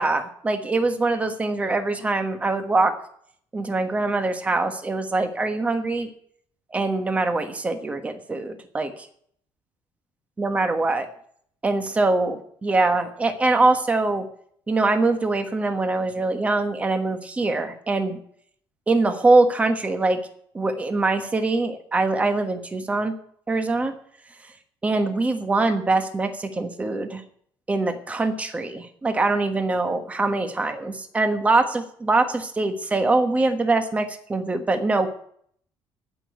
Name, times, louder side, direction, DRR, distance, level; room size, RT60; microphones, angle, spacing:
voice 1, 0.0-2.9 3.5-6.1 6.7-8.9 10.4-11.1 11.6-14.3 14.7-18.2 18.9-20.2 20.5-23.1 23.5-23.9 24.8-27.2 27.7-35.1, right 3 dB, 15° right, 7 dB, 1.3 m, -23 dB
13.5 x 6.3 x 9.3 m, 0.63 s
cardioid pair, 170°, 9 cm